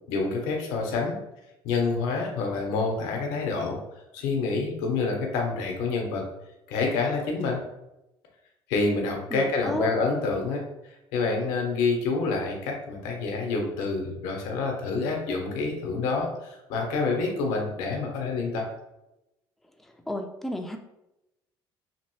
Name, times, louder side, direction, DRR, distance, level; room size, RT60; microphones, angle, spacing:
voice 1, 0.1-1.2 1.6-3.8 4.1-6.2 6.7-7.6 8.7-10.6 11.1-18.7, left 4 dB, 65° left, 1 dB, 0.8 m, -27 dB
voice 2, 9.3-9.9 20.1-20.8, left 1 dB, ahead, 4 dB, 0.4 m, -31 dB
2.8 x 2.6 x 3.0 m, 0.92 s
hypercardioid pair, 60°, 13 cm